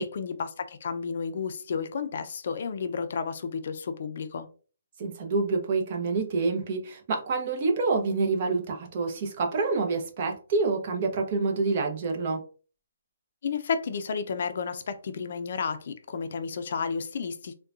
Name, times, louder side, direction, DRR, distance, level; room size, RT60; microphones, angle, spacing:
voice 1, 0.0-4.5 13.4-17.5, left 5 dB, 55° left, 9 dB, 0.4 m, -32 dB
voice 2, 5.0-12.4, right 4 dB, 40° right, 3 dB, 0.7 m, -27 dB
3.7 x 2.2 x 2.4 m, 0.38 s
hypercardioid pair, 155°, 0 cm